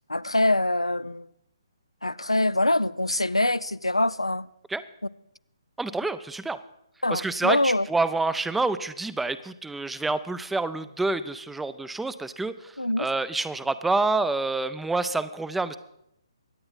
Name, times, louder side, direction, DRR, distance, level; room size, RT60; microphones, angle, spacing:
voice 1, 0.1-1.3 2.0-4.5 7.0-7.9 12.8-13.1, left 1 dB, 90° left, 0.4 m, -24 dB
voice 2, 5.8-6.6 7.1-15.8, right 3 dB, 5° right, 0.4 m, -28 dB
24.0 x 8.7 x 3.9 m
figure-of-eight pair, 135°, 3 cm